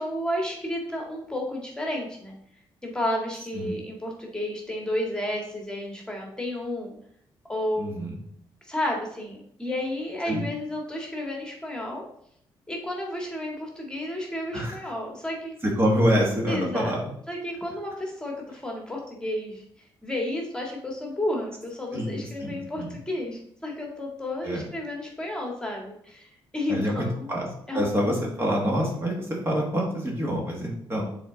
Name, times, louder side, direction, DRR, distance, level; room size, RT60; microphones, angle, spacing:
voice 1, 0.0-2.3 2.8-6.9 7.5-8.0 8.6-12.0 12.7-15.5 16.5-16.9 17.3-19.6 20.0-27.3 27.7-27.9, left 1 dB, 10° left, 0 dB, 1.8 m, -32 dB
voice 2, 7.8-8.2 10.2-10.4 14.5-14.8 15.6-17.1 21.9-22.9 24.4-24.6 26.7-27.5 27.7-31.0, equal, 30° right, -1 dB, 1.8 m, -26 dB
6.7 x 4.3 x 3.8 m, 0.68 s
cardioid pair, 85°, 9 cm